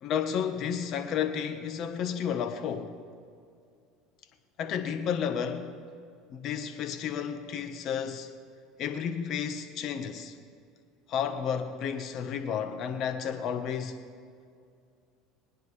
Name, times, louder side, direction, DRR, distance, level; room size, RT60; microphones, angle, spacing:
voice 1, 0.0-3.0 4.6-5.8 6.3-8.3 8.8-10.3 11.1-14.0, left 7 dB, 50° left, 1.3 m, -32 dB
25.5 x 9.4 x 3.4 m
supercardioid pair, 110°, 0 cm